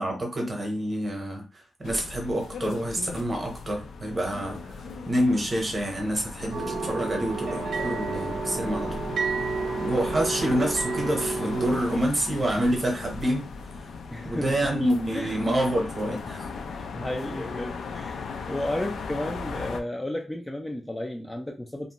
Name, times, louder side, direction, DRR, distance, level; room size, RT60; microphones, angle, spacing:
voice 1, 0.0-1.4 1.8-9.1 9.6-13.4 14.2-16.5, right 1 dB, 30° right, 0.8 m, -27 dB
sound 1, 1.8-19.8, left 4 dB, 80° left, 0.4 m, -37 dB
sound 2, 6.5-11.7, right 5 dB, 90° right, 0.5 m, -31 dB
voice 2, 14.1-14.7 15.1-15.5 16.7-21.9, left 1 dB, 10° left, 0.3 m, -33 dB
2.6 x 2.1 x 2.8 m
wide cardioid pair, 130°, 0 cm